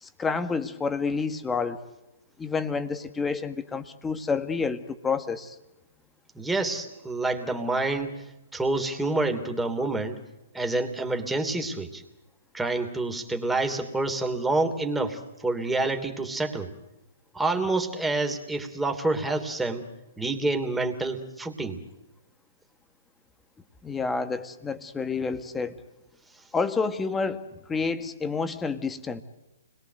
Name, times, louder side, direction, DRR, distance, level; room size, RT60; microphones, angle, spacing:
voice 1, 0.0-1.8 2.4-5.6 23.8-25.8 26.5-27.4 27.7-29.2, left 4 dB, 10° left, 9 dB, 1.8 m, -29 dB
voice 2, 6.3-8.2 8.5-10.2 10.5-12.0 12.5-16.7 17.3-19.9 20.2-21.8, right 2 dB, 5° right, 5 dB, 3.1 m, -28 dB
29.5 x 22.0 x 8.1 m, 0.95 s
hypercardioid pair, 130°, 0 cm